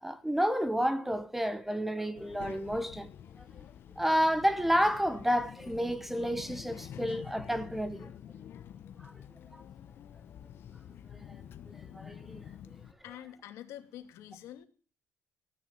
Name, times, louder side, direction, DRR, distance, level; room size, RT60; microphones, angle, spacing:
voice 1, 0.0-3.1 4.0-8.1 9.0-9.1 11.1-11.4 11.9-12.4, equal, 5° right, 1.0 m, -30 dB
Child speech kid speaking, 2.2-12.9, left 9 dB, 50° left, 1.0 m, -48 dB
voice 2, 13.0-14.7, left 12 dB, 85° left, 2.6 m, -46 dB
16.0 x 9.9 x 7.2 m
cardioid pair, 150°, 5 cm